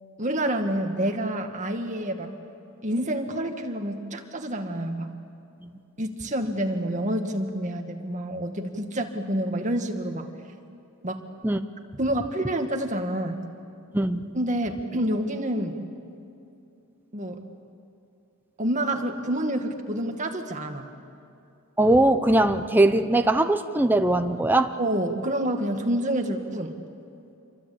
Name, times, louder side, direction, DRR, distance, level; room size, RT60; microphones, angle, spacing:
voice 1, 0.2-2.3 2.8-5.1 6.0-10.3 11.0-11.2 12.0-13.4 14.3-15.8 17.1-17.4 18.6-20.8 24.8-26.7, right 1 dB, 35° right, 4 dB, 2.0 m, -28 dB
voice 2, 13.9-14.3 21.8-24.7, right 1 dB, 10° right, 7 dB, 0.7 m, -21 dB
28.0 x 23.5 x 8.7 m, 2.7 s
head